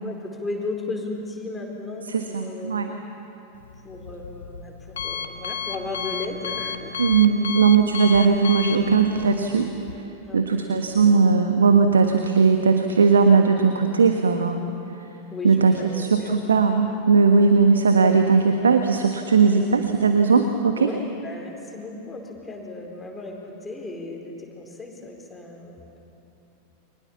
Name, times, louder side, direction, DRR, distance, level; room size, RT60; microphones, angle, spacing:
voice 1, 0.0-3.0 3.8-6.9 10.2-10.7 11.3-11.5 15.3-16.4 20.7-26.0, left 2 dB, 10° left, 0 dB, 4.3 m, -35 dB
voice 2, 2.1-3.0 7.0-9.7 10.3-14.6 15.4-20.9, right 5 dB, 70° right, 6 dB, 1.4 m, -18 dB
Alarm, 3.5-9.9, left 7 dB, 65° left, 1.6 m, -33 dB
29.5 x 25.0 x 7.3 m, 2.9 s
figure-of-eight pair, 90°, 0 cm